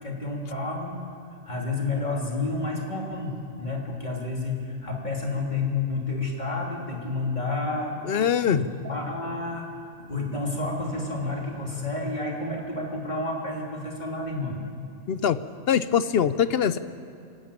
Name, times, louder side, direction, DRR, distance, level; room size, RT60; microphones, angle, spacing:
voice 1, 0.0-1.0 1.3-3.3 3.6-7.9 8.2-9.7 10.1-14.6, left 3 dB, 35° left, -1 dB, 3.1 m, -30 dB
voice 2, 8.1-8.6 15.1-15.4 15.7-16.8, left 8 dB, 60° left, 13 dB, 0.7 m, -22 dB
24.5 x 12.0 x 8.8 m, 2.5 s
omnidirectional pair, 1.4 m